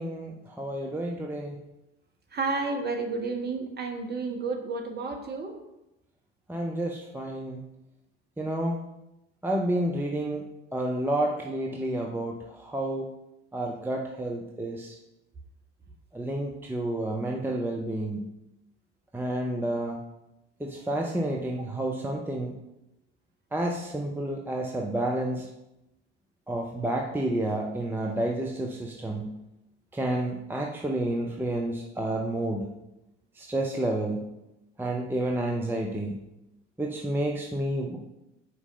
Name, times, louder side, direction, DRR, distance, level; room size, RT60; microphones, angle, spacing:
voice 1, 0.0-1.6 6.5-7.6 8.4-8.8 9.4-10.4 10.7-13.1 13.5-15.0 16.1-18.2 19.1-20.0 20.6-22.5 23.5-25.5 26.5-29.3 29.9-32.6 33.3-34.3 34.8-36.2 36.8-38.0, right 1 dB, 5° right, 0 dB, 0.7 m, -30 dB
voice 2, 2.3-5.6 21.6-21.7, right 3 dB, 25° right, 2 dB, 1.3 m, -31 dB
5.4 x 4.8 x 5.2 m, 0.91 s
figure-of-eight pair, 60°, 36 cm